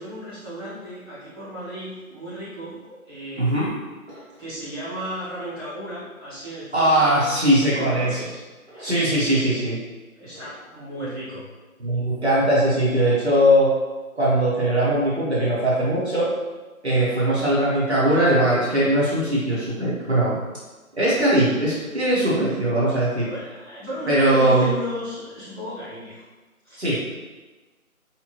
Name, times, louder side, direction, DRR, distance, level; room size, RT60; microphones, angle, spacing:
voice 1, 0.0-3.6 4.4-7.2 7.7-8.4 10.1-11.4 23.2-26.2 26.6-26.8, equal, 5° right, -20 dB, 1.3 m, -34 dB
voice 2, 3.4-3.7 6.7-8.2 8.7-9.8 10.3-10.4 11.8-13.7 14.1-16.3 16.8-20.4 20.9-23.3 24.1-24.7 26.8-27.0, right 1 dB, 50° right, -8 dB, 1.0 m, -20 dB
3.3 x 2.9 x 3.0 m, 1.2 s
figure-of-eight pair, 170°, 43 cm